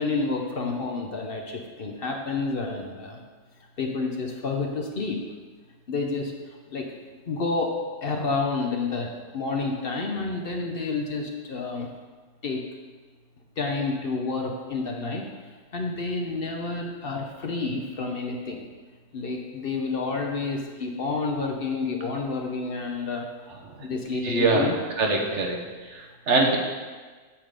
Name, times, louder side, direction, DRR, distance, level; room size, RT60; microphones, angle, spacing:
voice 1, 0.0-3.2 3.8-5.2 5.9-6.3 6.7-6.9 7.3-11.9 12.4-12.6 13.6-15.3 15.7-18.6 19.1-23.2 23.8-24.7 26.3-26.6, left 3 dB, 50° left, 2 dB, 0.9 m, -29 dB
voice 2, 23.8-24.7 25.0-25.6 25.9-26.6, right 3 dB, 65° right, 1 dB, 1.3 m, -24 dB
8.6 x 3.7 x 6.6 m, 1.4 s
omnidirectional pair, 1.3 m